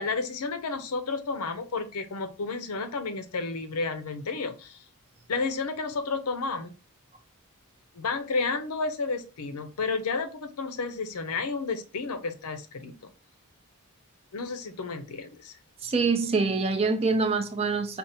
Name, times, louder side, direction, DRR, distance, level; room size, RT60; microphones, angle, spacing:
voice 1, 0.0-4.8 5.3-6.7 7.9-12.9 14.3-15.6, left 4 dB, 80° left, 9 dB, 0.6 m, -31 dB
voice 2, 15.8-18.0, right 4 dB, 25° right, 7 dB, 0.4 m, -25 dB
5.0 x 2.4 x 2.7 m, 0.34 s
head